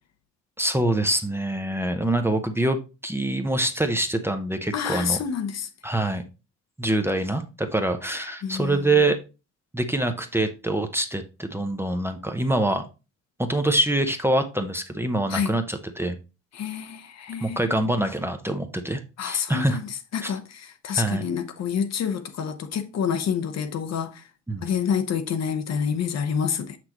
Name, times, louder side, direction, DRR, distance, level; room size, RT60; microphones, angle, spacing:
voice 1, 0.6-5.2 5.8-6.2 6.8-9.2 9.7-12.8 13.4-16.2 17.4-19.8 20.2-20.3 21.0-21.2 24.5-24.6, right 1 dB, 10° right, 0.7 m, -25 dB
voice 2, 4.7-5.7 8.4-8.8 15.3-15.5 16.6-17.6 19.2-19.8 20.1-20.4 20.8-24.2 24.6-26.8, left 7 dB, 60° left, 0.9 m, -27 dB
6.4 x 6.1 x 3.0 m
cardioid pair, 90°, 30 cm